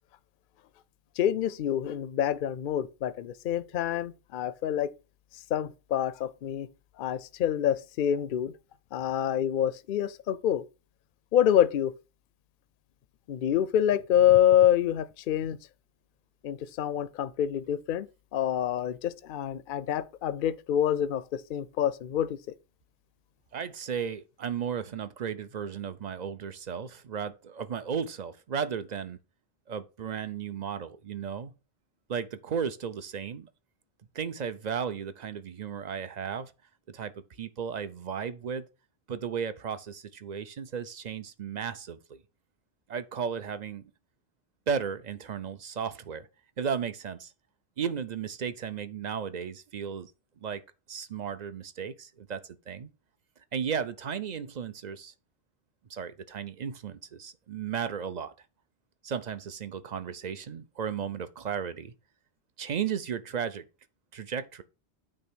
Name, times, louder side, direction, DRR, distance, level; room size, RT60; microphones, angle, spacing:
voice 1, 1.2-4.9 5.5-6.7 7.0-8.5 8.9-10.6 11.3-11.9 13.3-15.6 16.4-18.1 18.3-22.4, left 10 dB, 60° left, 0.6 m, -26 dB
voice 2, 23.5-29.2 29.7-31.5 32.1-33.5 34.1-36.5 36.9-37.1 37.4-38.7 39.1-42.2 42.9-43.8 44.7-46.3 46.6-47.3 47.8-50.1 50.4-50.6 50.9-52.9 53.5-55.1 55.9-58.3 59.0-61.9 62.6-63.6 64.1-64.6, right 7 dB, 45° right, 0.7 m, -34 dB
8.9 x 3.3 x 6.1 m
omnidirectional pair, 1.1 m